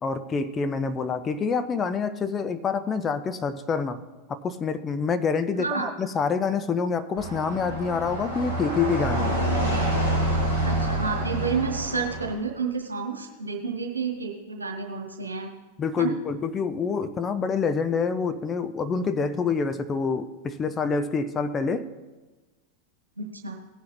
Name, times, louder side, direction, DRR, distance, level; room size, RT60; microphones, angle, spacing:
voice 1, 0.0-4.0 4.3-9.4 15.8-21.9, left 5 dB, 20° left, 10 dB, 0.6 m, -27 dB
voice 2, 5.6-5.9 10.6-15.5 16.0-16.2 23.2-23.6, right 5 dB, 80° right, 1 dB, 1.6 m, -30 dB
sound 1, 7.2-12.3, right 1 dB, 80° left, 3.5 m, -27 dB
18.5 x 6.4 x 4.2 m, 1.2 s
figure-of-eight pair, 90°, 0 cm